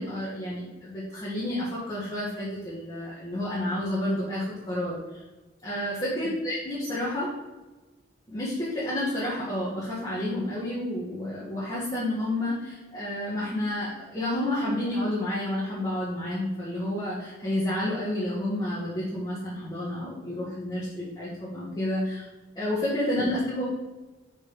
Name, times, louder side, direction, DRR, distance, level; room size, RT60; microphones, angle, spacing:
voice 1, 0.0-4.9 5.6-7.3 8.3-22.2 22.5-23.6, left 1 dB, 25° left, -9 dB, 1.6 m, -30 dB
5.4 x 5.2 x 4.9 m, 1.2 s
head